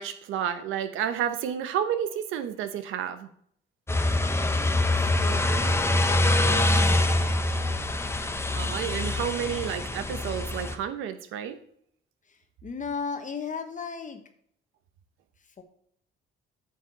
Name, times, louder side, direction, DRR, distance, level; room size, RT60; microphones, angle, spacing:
voice 1, 0.0-3.3 8.6-11.6, right 9 dB, 90° right, 10 dB, 0.9 m, -30 dB
sound 1, 3.9-10.8, left 2 dB, 15° left, 0.9 m, -25 dB
voice 2, 4.9-7.1 12.3-14.2 15.6-15.7, left 5 dB, 40° left, 7 dB, 1.1 m, -36 dB
9.4 x 6.6 x 4.0 m, 0.66 s
cardioid pair, 90°, 20 cm